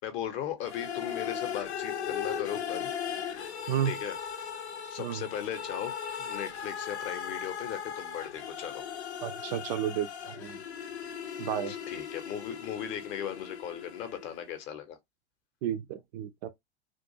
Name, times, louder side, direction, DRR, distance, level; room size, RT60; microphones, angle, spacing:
voice 1, 0.0-2.9 3.8-4.2 4.9-5.9 6.2-8.8 11.7-15.0, left 9 dB, 35° left, 0.7 m, -37 dB
sound 1, 0.6-14.5, left 8 dB, 75° left, 0.6 m, -38 dB
voice 2, 9.2-10.6 11.4-11.7 15.6-16.5, right 10 dB, 40° right, 0.4 m, -32 dB
2.5 x 2.2 x 2.7 m
figure-of-eight pair, 90°, 34 cm